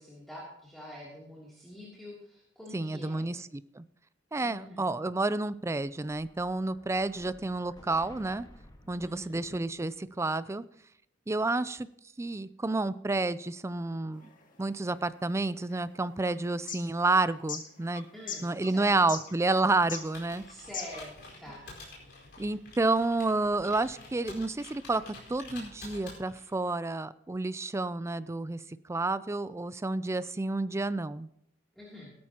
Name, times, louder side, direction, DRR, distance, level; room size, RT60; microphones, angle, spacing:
voice 1, 0.0-3.3 4.4-4.9 9.0-9.4 18.1-19.0 20.5-21.7 31.7-32.1, left 1 dB, ahead, -7 dB, 3.0 m, -46 dB
voice 2, 2.7-3.8 4.3-8.5 8.9-10.7 11.3-11.9 12.2-14.3 14.6-18.1 18.4-20.4 22.4-28.6 28.9-31.3, right 2 dB, 15° right, 16 dB, 0.4 m, -30 dB
Explosion, 5.5-10.0, left 1 dB, 20° left, 1.5 m, -56 dB
sound 1, 14.1-21.2, left 6 dB, 45° left, 1.9 m, -42 dB
Computer keyboard, 19.7-26.6, left 2 dB, 65° left, 4.7 m, -49 dB
16.5 x 13.0 x 2.9 m, 0.73 s
head